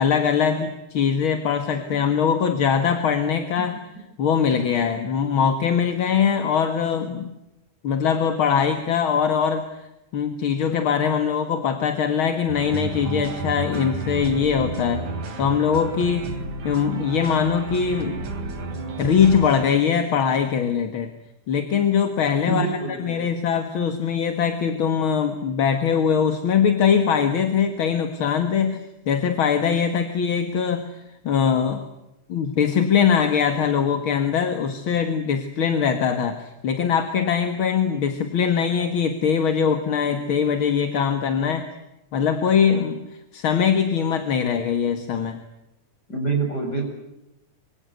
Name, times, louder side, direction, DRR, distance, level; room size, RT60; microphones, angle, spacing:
voice 1, 0.0-3.7 4.2-7.3 7.8-9.7 10.1-15.1 15.4-16.3 16.6-18.2 19.0-21.1 21.5-22.7 23.0-28.8 29.1-30.9 31.2-31.9 32.3-41.7 42.1-43.0 43.3-45.4, left 7 dB, 50° left, 8 dB, 2.2 m, -22 dB
sound 1, 12.5-19.7, right 3 dB, 70° right, 4.6 m, -32 dB
voice 2, 22.5-23.3 46.1-46.9, right 3 dB, 30° left, 4 dB, 7.6 m, -26 dB
25.5 x 25.5 x 8.0 m, 0.90 s
omnidirectional pair, 3.4 m